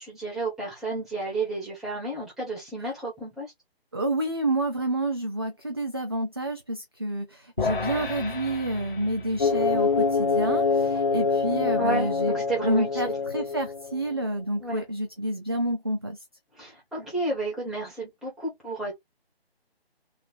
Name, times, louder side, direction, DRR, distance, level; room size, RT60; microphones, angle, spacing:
voice 1, 0.0-3.5 11.8-13.1 14.6-14.8 16.6-19.0, right 2 dB, ahead, 1.5 m, -32 dB
voice 2, 3.9-7.3 7.6-16.2, right 1 dB, 25° right, 0.4 m, -29 dB
sound 1, 7.6-14.0, left 4 dB, 55° left, 1.9 m, -37 dB
sound 2, 9.4-14.1, left 4 dB, 30° left, 0.5 m, -25 dB
3.7 x 3.4 x 3.4 m
figure-of-eight pair, 155°, 32 cm